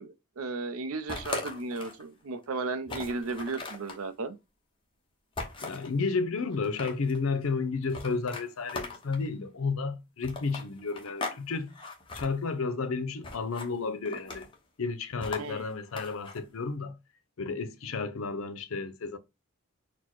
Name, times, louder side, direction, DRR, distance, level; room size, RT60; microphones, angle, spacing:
voice 1, 0.0-4.4 15.4-15.6, right 3 dB, 85° right, 0.6 m, -35 dB
sound 1, 1.1-2.0 2.4-2.5 2.9-4.0 5.4-5.9 6.5-7.2 7.9-9.3 10.2-11.4 11.7-12.3 13.2-13.7 14.1-14.6 15.2-16.4, left 3 dB, 25° left, 0.8 m, -39 dB
voice 2, 5.6-11.7 12.1-14.5 14.8-17.0 17.4-19.2, left 4 dB, 75° left, 0.6 m, -32 dB
4.2 x 2.1 x 4.4 m
head